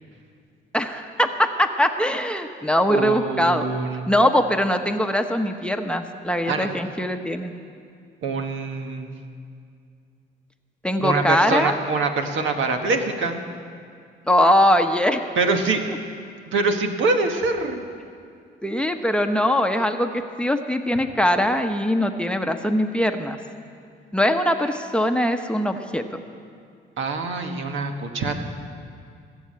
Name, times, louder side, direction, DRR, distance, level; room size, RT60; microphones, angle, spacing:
voice 1, 0.7-3.7 4.1-7.5 10.8-11.7 14.3-15.2 18.6-20.1 20.4-23.4 24.1-26.2, equal, 5° left, 5 dB, 0.9 m, -21 dB
voice 2, 2.9-4.0 6.5-6.7 8.2-9.1 11.0-13.4 15.4-15.8 16.5-17.8 27.0-28.4, right 3 dB, 75° right, 5 dB, 1.4 m, -24 dB
19.5 x 7.1 x 8.8 m, 2.3 s
cardioid pair, 90°, 20 cm